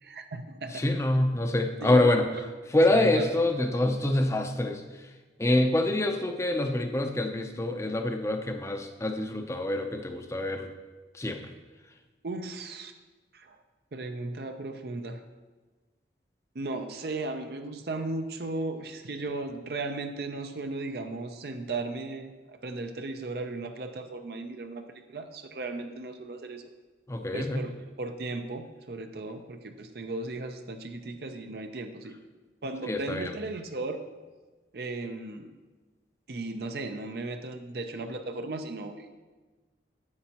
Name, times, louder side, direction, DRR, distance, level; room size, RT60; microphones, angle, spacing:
voice 1, 0.0-0.8 1.8-2.5 2.9-3.4 12.2-12.9 13.3-13.6 13.9-15.2 16.5-24.8 25.1-26.7 27.3-32.2 32.6-34.0 34.7-35.5 36.3-39.1, right 2 dB, 60° right, 6 dB, 0.6 m, -36 dB
voice 2, 0.7-2.3 2.7-4.8 5.4-10.7 11.1-11.5 27.1-27.6 32.8-33.3, left 1 dB, 15° left, 5 dB, 0.5 m, -26 dB
9.6 x 8.1 x 2.9 m, 1.3 s
head